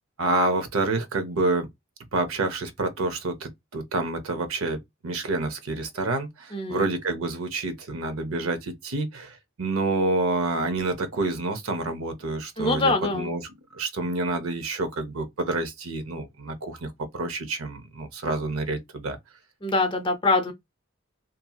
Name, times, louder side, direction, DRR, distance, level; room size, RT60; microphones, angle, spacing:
voice 1, 0.2-1.7 2.1-19.2, right 2 dB, 80° right, 0.7 m, -28 dB
voice 2, 6.5-6.9 12.6-13.3 19.6-20.5, left 3 dB, 20° left, 0.5 m, -24 dB
2.7 x 2.6 x 2.3 m
head